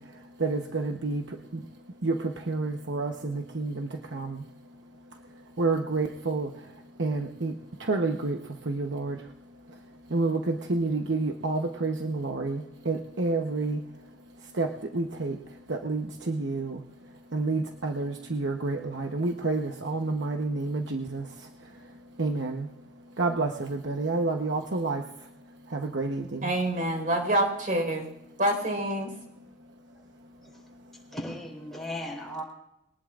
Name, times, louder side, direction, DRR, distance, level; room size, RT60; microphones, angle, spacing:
voice 1, 0.0-4.5 5.3-22.7 23.0-26.5 29.4-29.5 30.8-30.9, right 3 dB, 85° right, 3 dB, 1.0 m, -30 dB
voice 2, 26.4-28.1 28.4-29.1, right 1 dB, 50° right, 2 dB, 4.6 m, -26 dB
voice 3, 31.1-32.4, left 1 dB, ahead, -3 dB, 4.2 m, -37 dB
22.5 x 19.0 x 2.5 m, 0.87 s
head